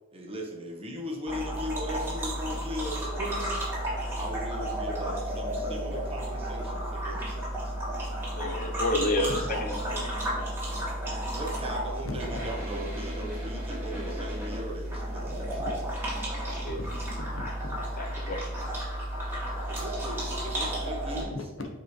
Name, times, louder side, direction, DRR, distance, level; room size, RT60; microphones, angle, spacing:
voice 1, 0.1-3.6 4.1-7.7 11.3-15.6 19.7-21.4, equal, 30° right, -1 dB, 1.2 m, -38 dB
sound 1, 1.3-21.2, right 1 dB, 10° right, 2.2 m, -33 dB
voice 2, 8.4-10.1 16.3-16.8 18.0-18.4, left 1 dB, 40° left, 3 dB, 0.8 m, -30 dB
voice 3, 16.7-17.8 21.2-21.7, left 2 dB, 75° left, 3 dB, 1.1 m, -40 dB
7.8 x 5.0 x 3.3 m, 1.2 s
head